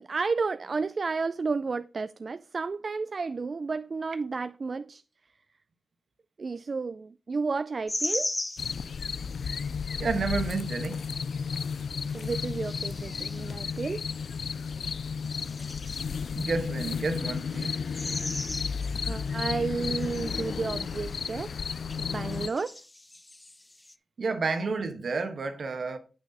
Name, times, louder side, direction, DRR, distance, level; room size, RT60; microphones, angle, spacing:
voice 1, 0.0-5.0 6.4-8.3 12.1-14.0 19.1-21.6 22.0-22.8, right 4 dB, 50° right, 0.3 m, -32 dB
sound 1, 7.9-9.7 10.3-10.7 11.3-11.4 11.7-14.8 15.1-23.9, left 2 dB, 20° left, 0.5 m, -40 dB
sound 2, 8.6-22.5, left 6 dB, 90° left, 0.3 m, -33 dB
voice 2, 10.0-11.1 16.3-17.8 24.2-26.0, right 4 dB, 65° right, 1.4 m, -30 dB
8.7 x 6.1 x 4.1 m
wide cardioid pair, 120°, 0 cm